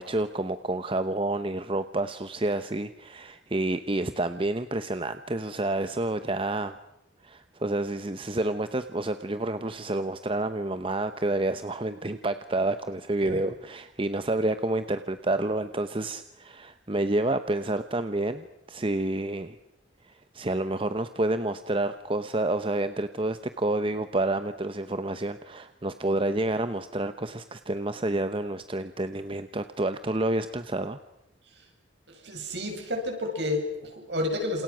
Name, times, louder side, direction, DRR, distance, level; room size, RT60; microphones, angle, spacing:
voice 1, 0.0-6.7 7.2-19.5 20.3-31.0, right 2 dB, 30° right, 10 dB, 0.8 m, -29 dB
voice 2, 32.2-34.6, left 1 dB, 60° right, 2 dB, 7.8 m, -30 dB
29.0 x 28.0 x 6.2 m, 0.91 s
head